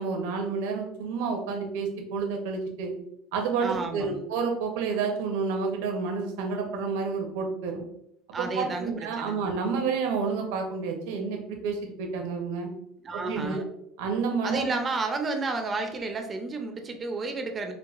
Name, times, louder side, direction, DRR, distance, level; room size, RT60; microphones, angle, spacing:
voice 1, 0.0-2.9 3.3-7.8 8.3-12.7 13.1-13.6 14.0-14.7, right 5 dB, 80° right, 3 dB, 0.8 m, -30 dB
voice 2, 3.6-4.2 8.3-9.4 13.0-13.6 14.4-17.7, right 3 dB, 20° right, 5 dB, 0.4 m, -31 dB
4.7 x 2.2 x 2.4 m, 0.76 s
cardioid pair, 155°, 0 cm